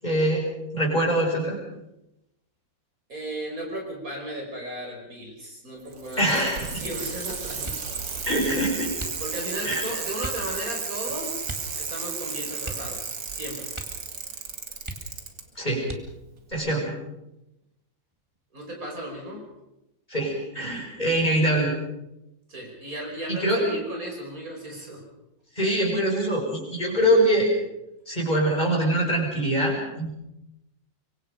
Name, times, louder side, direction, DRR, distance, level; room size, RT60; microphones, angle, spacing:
voice 1, 0.0-0.4 0.7-1.6 6.2-6.8 8.2-8.9 9.6-9.8 15.6-15.9 16.5-16.9 20.1-21.7 23.4-23.6 25.6-27.5 28.1-30.1, right 1 dB, 20° left, -1 dB, 6.2 m, -23 dB
voice 2, 3.1-6.3 6.6-7.8 9.2-11.5 11.7-13.7 18.5-19.4 22.5-25.0, right 1 dB, 45° right, 0 dB, 5.8 m, -35 dB
Bicycle, 5.8-15.4 16.5-16.6, right 5 dB, 75° right, 2.8 m, -33 dB
sound 1, 7.6-8.0 8.9-9.6 10.2-10.5 11.4-11.8 12.0-12.1 12.6-13.4 13.7-14.1 14.4-14.5 14.8-15.4 15.8-16.4 17.1-17.7 18.1-18.5, right 1 dB, 15° right, 2.2 m, -39 dB
25.0 x 24.0 x 5.2 m, 0.89 s
omnidirectional pair, 2.0 m